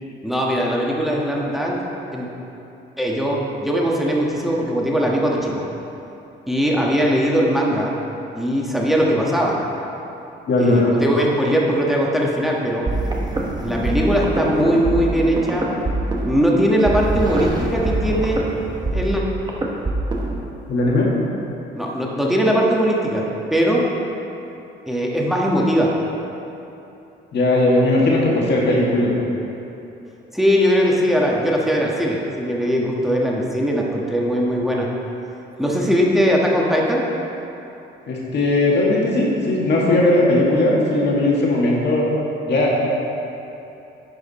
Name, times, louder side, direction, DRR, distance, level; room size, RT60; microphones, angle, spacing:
voice 1, 0.2-1.8 2.1-2.3 3.0-5.6 6.5-7.9 8.3-9.6 10.6-12.9 13.6-15.7 16.3-18.4 18.9-19.2 21.7-23.8 24.9-25.9 30.3-34.9 35.6-37.0, equal, ahead, -3 dB, 1.4 m, -20 dB
voice 2, 10.5-10.9 20.7-21.1 27.3-29.1 38.1-42.1 42.5-42.9, left 2 dB, 60° left, -4 dB, 1.9 m, -18 dB
sound 1, 12.9-20.4, right 2 dB, 20° right, 1.0 m, -24 dB
10.5 x 4.9 x 4.2 m, 2.9 s
cardioid pair, 90°, 20 cm